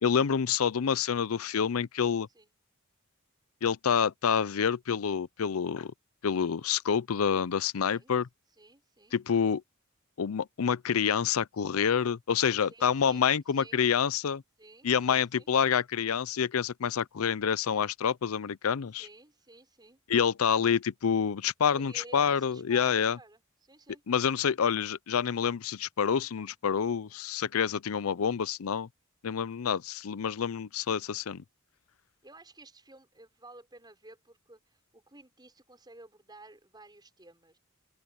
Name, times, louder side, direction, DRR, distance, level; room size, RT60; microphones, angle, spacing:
voice 1, 0.0-2.3 3.6-5.9 6.2-8.3 9.1-9.6 10.2-14.4 14.8-19.1 20.1-23.2 24.1-28.9 29.2-31.4, left 7 dB, 90° left, 0.5 m, -27 dB
voice 2, 7.8-8.1 8.6-9.2 12.7-13.2 13.6-13.8 14.6-15.5 19.0-20.0 21.7-24.0 32.2-37.6, right 2 dB, 20° right, 6.4 m, -53 dB
open air
head